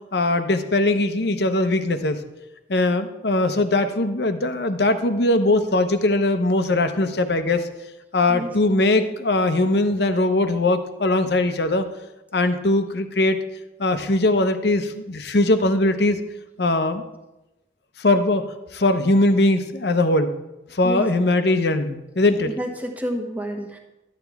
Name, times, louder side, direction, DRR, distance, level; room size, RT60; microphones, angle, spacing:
voice 1, 0.1-2.2 2.7-7.7 8.1-11.8 12.3-13.4 13.8-16.2 16.6-17.0 18.0-18.4 18.7-20.3 20.7-22.5, left 2 dB, 60° left, 9 dB, 0.8 m, -20 dB
voice 2, 22.5-23.8, equal, 10° right, 2 dB, 1.1 m, -29 dB
12.5 x 9.1 x 3.5 m, 0.98 s
head